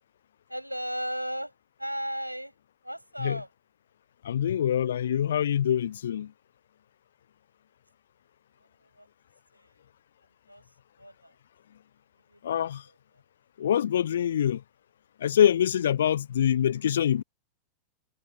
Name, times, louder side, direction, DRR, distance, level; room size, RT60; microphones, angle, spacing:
voice 1, 0.5-1.5 1.8-2.5 2.8-3.5 8.8-9.1 9.5-9.8 10.5-10.6 11.0-11.3 12.1-12.5 12.8-13.0, equal, 90° right, 6.7 m, -36 dB
voice 2, 4.2-6.3 12.4-12.8 13.6-14.6 15.2-17.2, left 10 dB, 65° left, 0.3 m, -25 dB
figure-of-eight pair, 90°, 0 cm